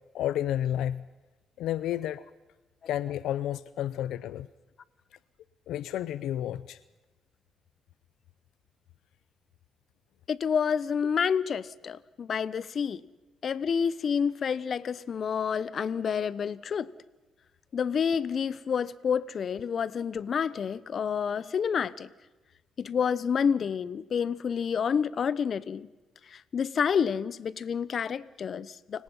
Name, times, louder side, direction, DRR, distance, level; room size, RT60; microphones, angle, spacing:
voice 1, 0.1-1.0 1.6-2.2 2.9-4.5 5.7-6.8, left 11 dB, 85° left, 0.6 m, -31 dB
voice 2, 10.3-13.0 13.4-16.9 17.7-22.1 22.8-25.9 26.5-29.0, left 7 dB, 50° left, 0.9 m, -29 dB
29.5 x 18.0 x 5.6 m
cardioid pair, 90°, 0 cm